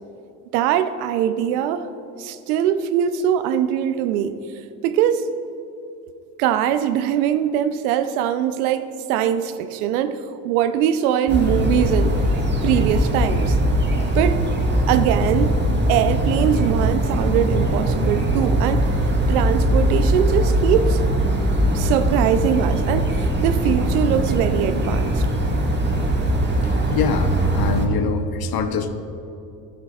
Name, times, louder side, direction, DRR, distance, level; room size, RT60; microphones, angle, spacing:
voice 1, 0.5-1.9 2.2-4.4 4.8-5.3 6.4-12.2 12.6-13.6 14.2-14.4 14.9-15.5 15.9-18.9 19.3-21.0 21.7-25.3, right 10 dB, 80° right, 12 dB, 0.7 m, -22 dB
sound 1, 11.3-27.9, right 1 dB, 25° right, 1.8 m, -20 dB
voice 2, 26.9-28.9, left 6 dB, 55° left, 8 dB, 1.0 m, -25 dB
13.5 x 11.0 x 2.4 m, 2.8 s
hypercardioid pair, 60°, 44 cm